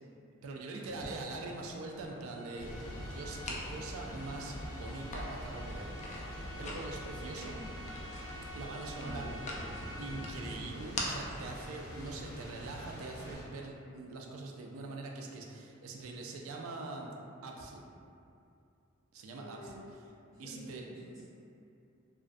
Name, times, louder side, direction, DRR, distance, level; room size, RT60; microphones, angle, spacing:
voice 1, 0.4-2.7 3.0-7.5 8.5-9.3 10.0-17.1 17.4-17.8 19.1-19.7 20.4-20.8, right 3 dB, 80° right, 1 dB, 0.3 m, -43 dB
sound 1, 0.9-13.3, left 2 dB, 35° left, 0.3 m, -46 dB
sound 2, 2.3-10.8, equal, 5° left, 0.8 m, -50 dB
Thunder / Rain, 2.6-13.4, equal, 85° left, 0.6 m, -45 dB
voice 2, 7.1-7.7 9.0-9.3 19.3-19.8 20.3-21.2, right 1 dB, 20° right, -15 dB, 1.1 m, -50 dB
2.3 x 2.1 x 2.4 m, 2.5 s
head